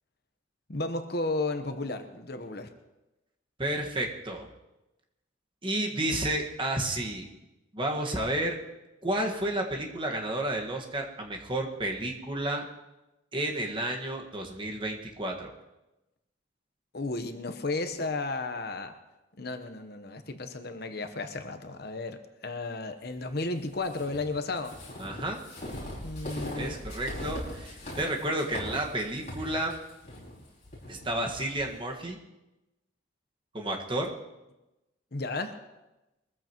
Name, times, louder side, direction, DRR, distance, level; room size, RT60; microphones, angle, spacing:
voice 1, 0.7-2.7 16.9-18.9 19.4-24.7 26.0-26.8 35.1-35.5, left 2 dB, 55° left, 7 dB, 1.0 m, -33 dB
voice 2, 3.6-4.5 5.6-7.3 7.7-8.6 9.0-12.7 13.3-15.5 25.0-25.4 26.5-29.8 30.9-32.2 33.5-34.1, right 1 dB, 25° right, 1 dB, 1.6 m, -31 dB
sound 1, 23.8-31.7, left 1 dB, 35° left, 5.6 m, -40 dB
22.5 x 14.5 x 3.0 m, 1.0 s
head